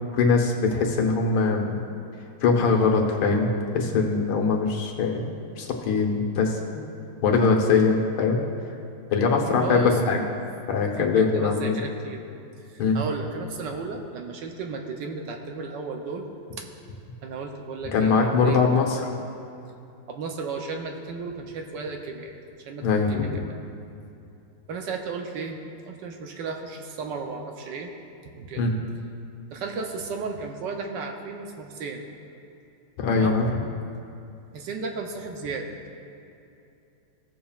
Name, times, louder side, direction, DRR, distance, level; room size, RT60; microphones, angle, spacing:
voice 1, 0.1-1.7 2.4-5.3 5.6-6.6 7.2-8.4 9.1-10.2 10.7-11.7 12.8-13.0 17.9-18.9 22.8-23.3 28.6-28.7 33.0-33.5, left 4 dB, 85° left, 1 dB, 1.9 m, -22 dB
voice 2, 9.6-10.2 11.0-12.2 12.7-16.3 17.2-18.6 20.1-23.5 24.7-25.6 25.8-27.9 28.2-28.7 29.5-32.0 33.1-33.4 34.5-35.7, right 4 dB, 70° right, 3 dB, 1.2 m, -34 dB
16.5 x 7.1 x 2.4 m, 2.7 s
omnidirectional pair, 2.2 m